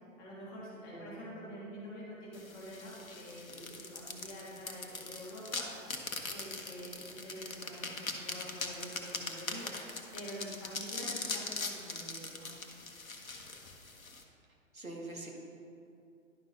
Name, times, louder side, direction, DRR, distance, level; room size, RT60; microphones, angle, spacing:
voice 1, 0.2-5.9 6.3-12.5, equal, 20° left, -6 dB, 1.6 m, -47 dB
sound 1, 2.3-14.2, left 3 dB, 80° left, 0.9 m, -41 dB
voice 2, 14.7-15.3, right 2 dB, 80° right, -1 dB, 1.5 m, -44 dB
10.5 x 5.3 x 2.9 m, 2.5 s
figure-of-eight pair, 120°, 41 cm